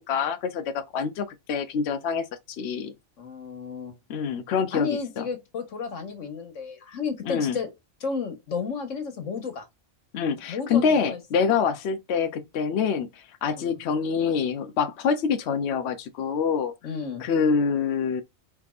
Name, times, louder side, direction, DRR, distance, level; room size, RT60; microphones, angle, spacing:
voice 1, 0.0-2.9 4.1-4.9 5.2-5.3 7.3-7.6 10.1-16.7 17.2-18.2, left 6 dB, 65° left, 0.8 m, -26 dB
voice 2, 3.2-4.0 4.7-7.7 8.0-9.7 10.5-11.2 13.5-13.7 16.8-17.2, left 5 dB, 90° left, 1.6 m, -32 dB
4.7 x 3.4 x 2.4 m
omnidirectional pair, 1.3 m